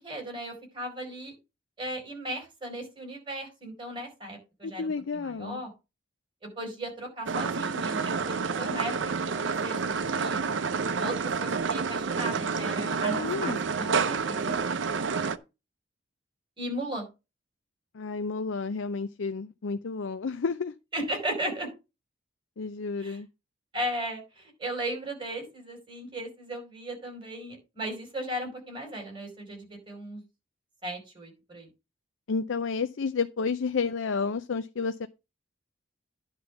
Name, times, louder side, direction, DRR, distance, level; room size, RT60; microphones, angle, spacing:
voice 1, 0.0-1.3 1.8-5.7 6.4-10.4 11.0-14.6 16.6-17.1 20.9-21.7 23.0-23.2 23.7-30.2 30.8-31.7, right 1 dB, 25° right, 4.6 m, -36 dB
voice 2, 4.6-5.6 13.1-13.6 17.9-20.7 22.6-23.3 32.3-35.1, left 5 dB, 80° left, 0.5 m, -31 dB
sound 1, 7.3-15.4, right 5 dB, 75° right, 0.6 m, -29 dB
10.5 x 3.8 x 6.9 m
head